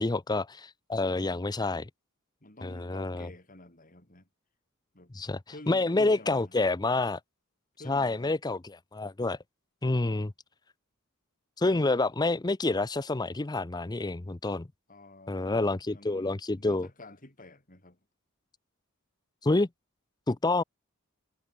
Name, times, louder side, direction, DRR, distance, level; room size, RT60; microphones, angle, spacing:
voice 1, 0.0-1.9 2.6-3.3 5.1-5.4 5.7-7.2 7.9-9.4 9.8-10.3 11.6-14.7 15.3-16.9 19.4-19.7 20.3-20.6, left 2 dB, 20° left, 0.6 m, -28 dB
voice 2, 2.4-4.3 4.9-5.1 5.5-6.5 7.8-8.4 14.9-18.0, left 1 dB, 40° left, 5.0 m, -50 dB
head